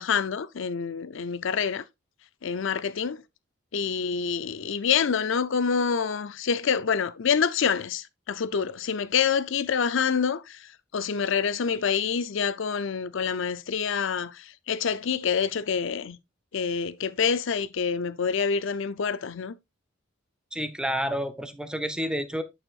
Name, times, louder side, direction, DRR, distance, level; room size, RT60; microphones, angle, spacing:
voice 1, 0.0-1.8 2.4-3.2 3.7-10.6 10.9-16.2 16.5-19.5, left 6 dB, 65° left, 0.5 m, -27 dB
voice 2, 20.5-22.4, equal, 5° right, 0.6 m, -29 dB
8.8 x 6.5 x 2.4 m
head